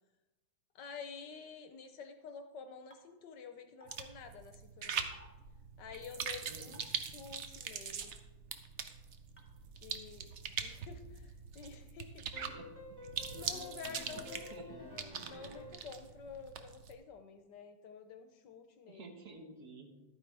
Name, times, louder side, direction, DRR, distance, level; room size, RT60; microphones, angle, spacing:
voice 1, 0.7-5.1 5.8-8.1 9.8-12.5 13.3-19.1, left 6 dB, 70° left, 7 dB, 1.2 m, -50 dB
sound 1, 2.9-3.0 3.8-4.0 5.1-5.3 6.7-7.0 8.0-8.1 9.4-9.5, equal, 10° left, 1.1 m, -57 dB
sound 2, 3.9-16.9, right 7 dB, 90° right, 0.6 m, -43 dB
voice 2, 6.5-6.8 10.0-10.2 12.5-13.0 13.9-14.8 15.1-15.3 18.9-19.9, right 3 dB, 55° right, 4 dB, 1.5 m, -53 dB
sound 3, 12.3-15.9, left 1 dB, 15° right, 0.9 m, -51 dB
12.0 x 9.2 x 3.4 m, 1.1 s
omnidirectional pair, 2.2 m